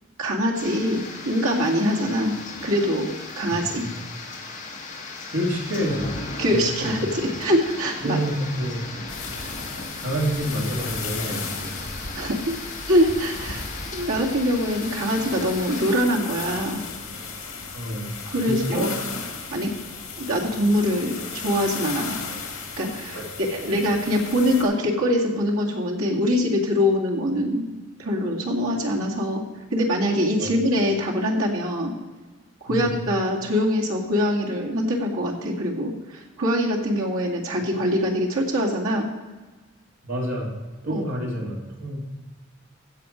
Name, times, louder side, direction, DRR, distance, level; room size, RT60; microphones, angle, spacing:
voice 1, 0.2-2.4 2.6-3.8 6.4-8.2 12.1-12.6 12.9-13.6 13.9-16.8 18.3-18.9 19.5-19.7 20.2-22.2 22.8-27.7 28.0-29.4 29.7-31.9 32.6-39.1 40.9-41.0, equal, 85° right, -2 dB, 2.3 m, -23 dB
sound 1, 0.5-15.9, left 3 dB, 35° left, 1.9 m, -37 dB
voice 2, 5.3-6.1 6.5-7.0 8.0-8.8 10.0-12.1 17.7-18.1 18.4-19.0 23.1-23.2 30.4-30.5 32.7-32.9 40.0-40.5 40.8-42.1, equal, 70° right, -2 dB, 2.7 m, -28 dB
sound 2, 9.1-24.6, left 5 dB, 75° left, 2.4 m, -35 dB
15.5 x 6.3 x 5.2 m, 1.3 s
head